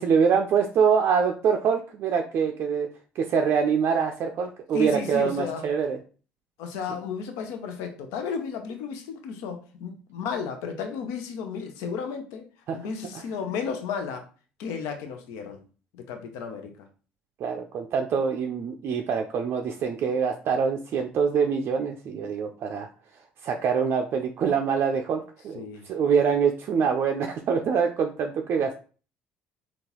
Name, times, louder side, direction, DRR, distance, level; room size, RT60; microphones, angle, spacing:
voice 1, 0.0-2.9 3.2-6.0 12.7-12.8 13.1-13.2 17.4-22.9 23.4-28.7, right 6 dB, 55° right, 4 dB, 0.4 m, -25 dB
voice 2, 4.7-5.7 6.6-12.4 12.7-14.3 14.6-15.6 15.9-16.7 25.5-25.8, left 6 dB, 75° left, 6 dB, 0.5 m, -33 dB
3.7 x 2.3 x 2.9 m, 0.38 s
hypercardioid pair, 65°, 5 cm